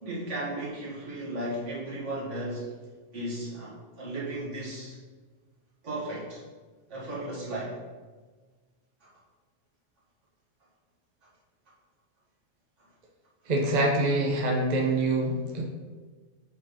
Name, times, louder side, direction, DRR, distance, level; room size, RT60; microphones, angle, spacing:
voice 1, 0.0-2.7 3.1-5.0 5.8-6.4 6.9-7.8, right 1 dB, 70° right, -6 dB, 1.9 m, -35 dB
voice 2, 13.5-15.6, right 2 dB, 40° right, 0 dB, 0.8 m, -25 dB
6.4 x 5.0 x 3.8 m, 1.4 s
omnidirectional pair, 1.3 m